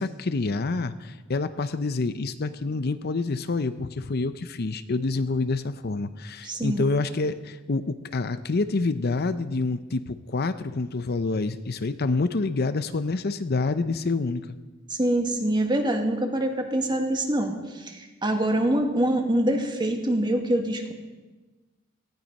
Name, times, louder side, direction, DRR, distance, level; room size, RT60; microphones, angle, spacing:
voice 1, 0.0-14.5, left 3 dB, 50° left, 11 dB, 0.6 m, -27 dB
voice 2, 6.4-6.9 14.9-20.9, right 1 dB, 25° right, 4 dB, 1.9 m, -25 dB
18.5 x 14.5 x 5.4 m, 1.2 s
head